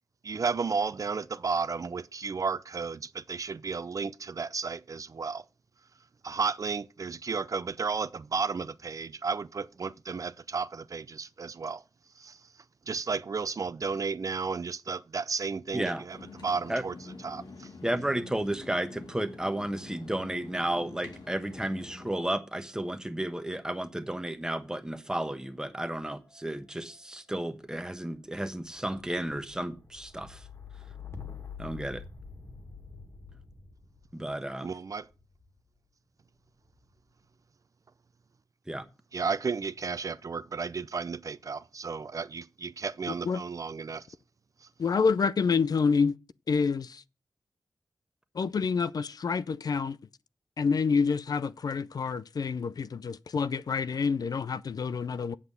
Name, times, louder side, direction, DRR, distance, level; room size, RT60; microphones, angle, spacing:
voice 1, 0.2-5.4 6.2-11.8 12.2-12.4 12.9-16.2 16.4-16.9 17.2-17.7 34.6-35.0 39.1-44.1, right 5 dB, 55° right, 0.5 m, -33 dB
voice 2, 15.7-16.0 16.7-16.8 17.8-30.4 31.6-32.0 34.1-34.6 38.7-38.8, right 1 dB, 10° right, 1.2 m, -33 dB
sound 1, 16.1-22.1, left 3 dB, 90° left, 2.2 m, -46 dB
sound 2, 19.7-20.4 20.6-35.7 36.4-37.0, left 6 dB, 40° left, 2.3 m, -50 dB
voice 3, 44.8-46.2 46.5-47.0 48.4-50.0 50.6-55.3, left 5 dB, 65° left, 0.5 m, -27 dB
8.1 x 7.4 x 6.7 m
wide cardioid pair, 95°, 7 cm